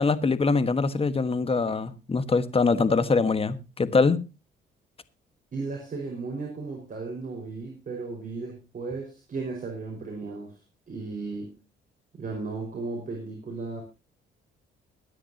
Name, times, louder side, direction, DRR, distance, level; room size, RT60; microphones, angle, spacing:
voice 1, 0.0-4.2, left 4 dB, 30° left, 1.5 m, -23 dB
voice 2, 5.5-10.6 10.9-11.6 12.1-13.8, right 3 dB, 45° right, 5.3 m, -35 dB
22.5 x 9.8 x 2.9 m
cardioid pair, 90°, 20 cm